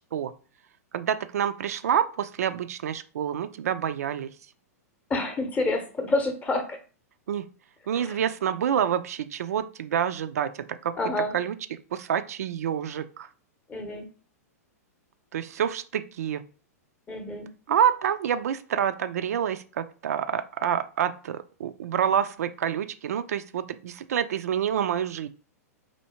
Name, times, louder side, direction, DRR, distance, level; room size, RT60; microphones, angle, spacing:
voice 1, 0.9-4.3 7.3-7.5 7.9-10.9 11.3-11.6 11.9-13.3 15.3-16.4 17.7-25.3, right 9 dB, 70° right, 10 dB, 0.4 m, -27 dB
voice 2, 5.1-6.8 8.0-8.2 11.0-11.4 13.7-14.1 17.1-17.5, left 2 dB, 15° left, 6 dB, 0.8 m, -28 dB
4.3 x 2.7 x 2.9 m, 0.37 s
hypercardioid pair, 110°, 9 cm